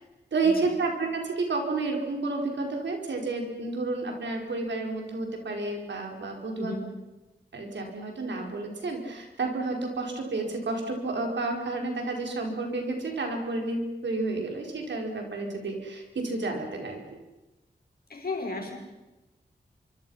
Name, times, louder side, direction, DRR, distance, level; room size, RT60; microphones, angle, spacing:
voice 1, 0.3-6.8 7.5-17.0, right 3 dB, 85° right, 2 dB, 4.8 m, -30 dB
voice 2, 18.1-18.8, left 3 dB, 55° left, 1 dB, 6.1 m, -34 dB
26.0 x 24.5 x 5.7 m, 1.1 s
wide cardioid pair, 75°, 18 cm